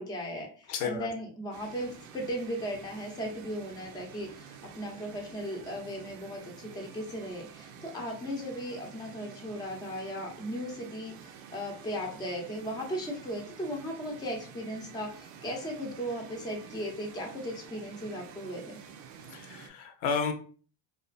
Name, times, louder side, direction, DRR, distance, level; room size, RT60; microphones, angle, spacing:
voice 1, 0.0-18.8, equal, 10° left, 1 dB, 0.5 m, -37 dB
voice 2, 0.7-1.1 19.3-20.3, left 5 dB, 75° left, 5 dB, 0.7 m, -32 dB
sound 1, 1.5-19.7, right 7 dB, 80° right, 0.6 m, -49 dB
2.4 x 2.3 x 2.3 m, 0.41 s
supercardioid pair, 100°, 48 cm